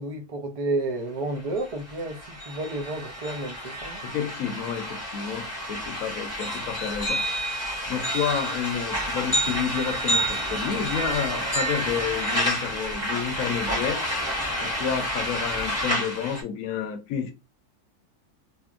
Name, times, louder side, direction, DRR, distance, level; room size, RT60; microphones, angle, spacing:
voice 1, 0.0-4.0, right 2 dB, 50° right, 0.4 m, -31 dB
sound 1, 1.4-1.5 1.6-16.4, equal, 10° right, 1.2 m, -29 dB
voice 2, 4.0-7.2 7.9-14.0 14.6-17.3, left 7 dB, 70° left, 1.0 m, -30 dB
2.8 x 2.7 x 2.4 m
omnidirectional pair, 1.6 m